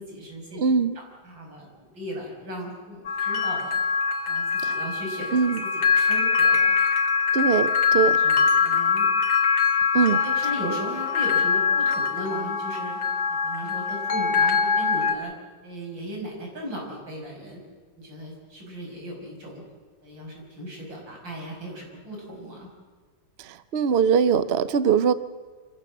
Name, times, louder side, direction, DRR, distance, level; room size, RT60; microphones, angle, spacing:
voice 1, 0.0-0.6 0.9-3.8 4.3-4.4 4.7-5.3 5.6-6.7 7.9-9.1 10.0-13.0 13.3-15.3 15.6-17.6 18.0-19.6 20.0-22.7, equal, 80° right, -1 dB, 6.5 m, -37 dB
voice 2, 0.5-1.0 4.6-4.8 5.3-5.6 7.3-8.2 9.9-10.2 23.4-25.1, right 6 dB, 55° right, 14 dB, 0.7 m, -22 dB
sound 1, 3.1-15.2, left 6 dB, 80° left, 2.4 m, -23 dB
26.5 x 15.5 x 7.3 m, 1.5 s
omnidirectional pair, 2.0 m